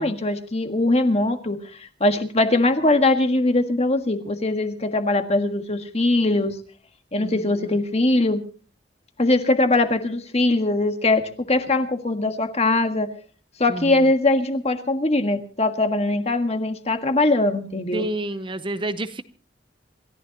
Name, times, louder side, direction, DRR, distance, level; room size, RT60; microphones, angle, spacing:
voice 1, 0.0-6.6 7.1-8.4 9.2-13.1 13.6-18.1, left 2 dB, 35° left, 7 dB, 1.6 m, -21 dB
voice 2, 17.9-19.2, right 1 dB, 25° right, 11 dB, 0.7 m, -29 dB
28.0 x 14.5 x 2.9 m, 0.41 s
head